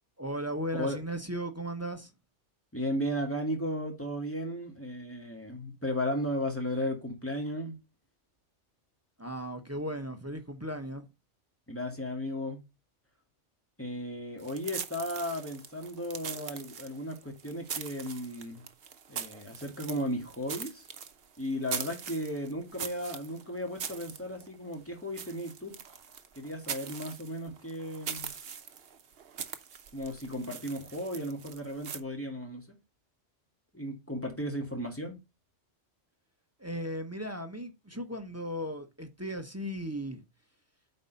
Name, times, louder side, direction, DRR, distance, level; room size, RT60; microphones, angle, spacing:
voice 1, 0.2-2.1 9.2-11.0 36.6-40.2, equal, 15° right, 0.8 m, -36 dB
voice 2, 2.7-7.8 11.7-12.6 13.8-18.6 19.1-20.9 21.4-25.8 26.4-28.3 29.9-32.7 33.7-35.2, equal, 10° left, 2.2 m, -35 dB
sound 1, 14.4-32.0, right 7 dB, 60° right, 1.0 m, -42 dB
8.7 x 4.2 x 5.2 m
omnidirectional pair, 1.2 m